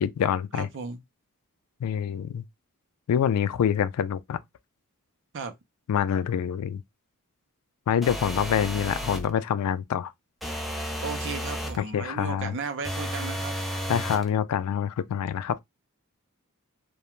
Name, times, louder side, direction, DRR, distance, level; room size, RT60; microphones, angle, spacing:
voice 1, 0.0-0.7 1.8-2.4 3.1-4.4 5.9-6.8 7.9-10.1 11.8-12.6 13.9-15.6, left 8 dB, 90° left, 0.3 m, -26 dB
voice 2, 0.5-1.0 5.3-5.5 11.0-13.5, right 5 dB, 55° right, 0.5 m, -35 dB
sound 1, 8.0-9.3 10.4-11.8 12.8-14.3, equal, ahead, 0.4 m, -32 dB
2.4 x 2.2 x 2.9 m
head